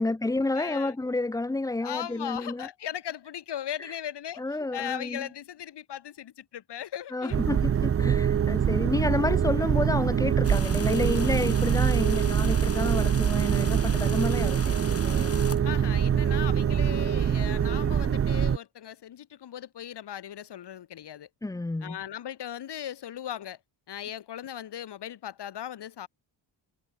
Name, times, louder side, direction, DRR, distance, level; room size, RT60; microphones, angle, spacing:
voice 1, 0.0-2.7 4.4-5.3 7.1-15.4 21.4-22.0, left 2 dB, 10° left, 0.7 m, -30 dB
voice 2, 0.5-0.9 1.8-7.4 15.6-21.3 21.8-23.6 23.9-26.1, left 10 dB, 65° left, 3.1 m, -38 dB
sound 1, 7.3-18.6, right 8 dB, 35° right, 0.6 m, -24 dB
sound 2, 10.4-15.6, left 5 dB, 35° left, 3.1 m, -40 dB
cardioid pair, 130°, 43 cm